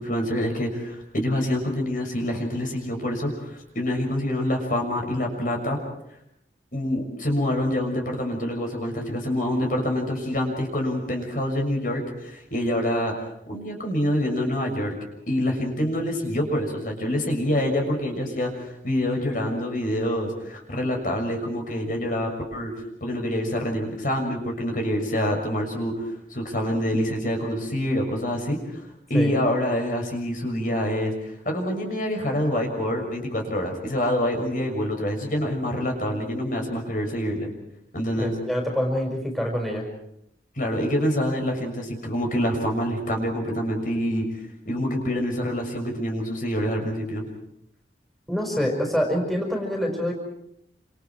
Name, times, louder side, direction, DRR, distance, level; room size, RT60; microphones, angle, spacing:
voice 1, 0.0-5.8 6.7-13.1 13.5-14.9 15.3-22.7 23.0-26.0 26.3-28.8 29.1-31.1 31.4-37.5 37.9-38.3 40.5-44.3 44.6-47.3, equal, 50° left, 2 dB, 6.5 m, -26 dB
voice 2, 38.2-39.8 48.3-50.1, equal, ahead, 0 dB, 5.1 m, -26 dB
29.0 x 28.0 x 4.7 m, 0.76 s
head